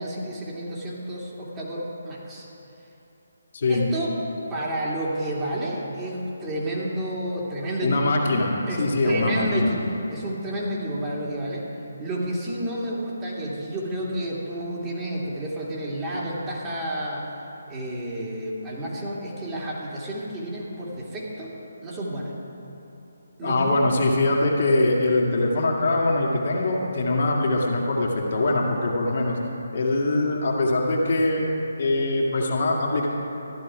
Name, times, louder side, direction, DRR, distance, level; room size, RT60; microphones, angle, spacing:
voice 1, 0.0-2.5 3.7-4.2 4.5-8.1 8.7-9.8 10.1-11.6 12.0-17.3 17.7-21.5 21.8-22.3 23.4-23.8, right 1 dB, 20° right, -5 dB, 2.6 m, -30 dB
voice 2, 3.5-3.9 7.8-9.7 23.4-29.4 29.7-31.5 31.8-33.1, left 2 dB, 55° left, -2 dB, 2.1 m, -23 dB
14.0 x 11.0 x 5.0 m, 3.0 s
figure-of-eight pair, 150°, 0 cm